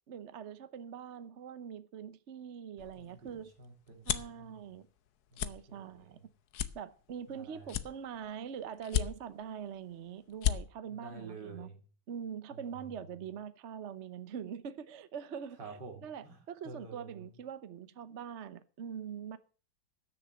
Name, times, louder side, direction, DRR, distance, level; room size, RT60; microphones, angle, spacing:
voice 1, 0.1-3.5 4.0-4.9 5.4-6.2 6.7-11.7 12.1-19.4, right 8 dB, 50° right, 0.9 m, -43 dB
sound 1, 2.8-4.4 4.9-5.1 5.3-5.5 6.0-6.1 6.5-7.3 7.7-8.4 8.8-9.5 9.9-10.0 10.3-10.6, left 10 dB, 65° left, 1.2 m, -33 dB
voice 2, 3.0-4.8 5.3-6.3 7.3-7.8 10.9-11.8 12.5-12.9 15.6-16.4 16.6-17.3, right 4 dB, 70° right, 3.0 m, -50 dB
12.5 x 6.7 x 7.5 m
omnidirectional pair, 2.0 m